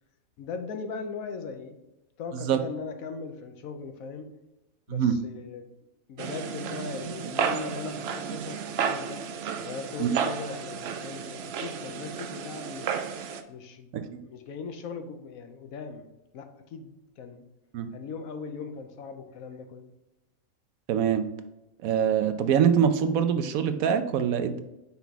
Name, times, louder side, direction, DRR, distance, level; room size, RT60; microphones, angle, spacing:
voice 1, 0.4-1.8 2.2-4.3 4.9-5.7 6.1-8.6 8.9-9.2 9.6-13.1 13.5-13.9 14.2-16.1 16.3-16.9 17.2-17.4 17.9-19.9, left 5 dB, 85° left, 7 dB, 1.2 m, -39 dB
sound 1, 6.2-13.4, right 7 dB, 65° right, 0.7 m, -32 dB
voice 2, 20.9-21.3 21.8-24.6, right 8 dB, 90° right, 9 dB, 1.1 m, -24 dB
5.7 x 4.5 x 4.1 m, 0.96 s
omnidirectional pair, 1.4 m